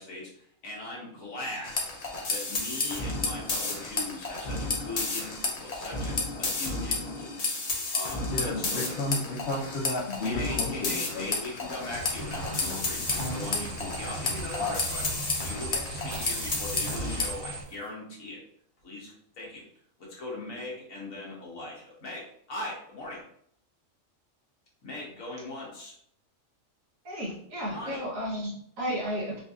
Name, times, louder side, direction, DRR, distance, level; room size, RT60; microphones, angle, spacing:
voice 1, 0.0-1.9 2.2-7.5 7.9-9.0 10.2-15.1 15.4-18.4 18.8-19.6 20.0-23.2 24.8-25.9 27.7-28.0, left 2 dB, 90° left, -3 dB, 1.5 m, -40 dB
sound 1, 1.6-17.3, left 3 dB, 45° left, 0.5 m, -32 dB
voice 2, 8.2-11.3 12.6-13.9 14.3-14.8, left 2 dB, 60° left, -6 dB, 0.9 m, -34 dB
sound 2, 11.9-17.6, right 2 dB, 30° right, 1.0 m, -37 dB
sound 3, 13.1-13.7 14.4-14.5 16.1-17.9, right 4 dB, 60° right, 1.0 m, -47 dB
voice 3, 27.0-29.4, equal, 80° right, -4 dB, 1.6 m, -33 dB
4.3 x 2.6 x 2.4 m, 0.66 s
omnidirectional pair, 1.4 m